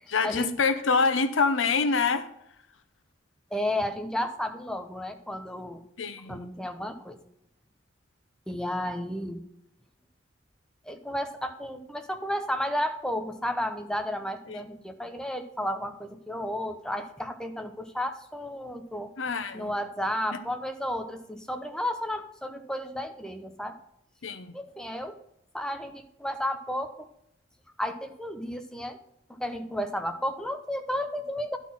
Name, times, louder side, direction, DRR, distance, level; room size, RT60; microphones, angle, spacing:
voice 1, 0.1-2.3 6.0-6.5 14.5-14.6 19.2-19.7 24.2-24.5, left 4 dB, 80° left, 11 dB, 0.7 m, -26 dB
voice 2, 3.5-5.8 6.3-7.2 8.5-9.4 10.8-19.1 19.5-23.8 24.5-25.2 25.5-27.1 27.8-29.0 29.3-31.6, left 1 dB, 5° left, 6 dB, 0.8 m, -32 dB
11.5 x 4.2 x 5.9 m, 0.75 s
head